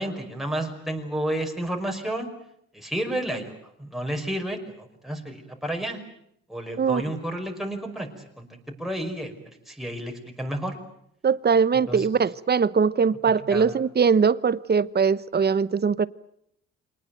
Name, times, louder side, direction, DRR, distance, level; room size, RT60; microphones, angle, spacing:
voice 1, 0.0-2.3 2.7-6.0 6.5-8.1 8.4-8.5 8.8-9.4 9.7-10.8 11.9-12.1 13.5-13.7, right 1 dB, ahead, 2 dB, 5.3 m, -31 dB
voice 2, 11.2-16.1, right 6 dB, 35° right, 18 dB, 0.9 m, -21 dB
26.0 x 19.5 x 9.2 m, 0.73 s
cardioid pair, 90°, 30 cm